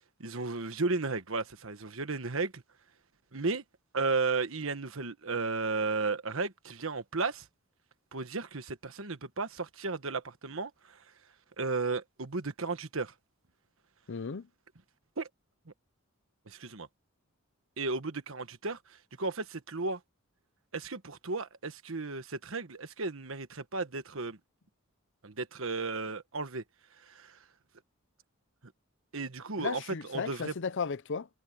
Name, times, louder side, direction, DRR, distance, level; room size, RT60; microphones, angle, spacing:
voice 1, 0.2-2.6 3.3-3.6 3.9-7.4 8.1-10.7 11.6-13.1 15.2-15.3 16.5-16.9 17.8-18.8 19.2-20.0 20.7-24.4 25.2-26.6 27.1-27.4 29.1-30.5, right 3 dB, 65° right, 1.4 m, -34 dB
voice 2, 14.1-14.5 29.6-31.3, left 5 dB, 60° left, 0.6 m, -35 dB
head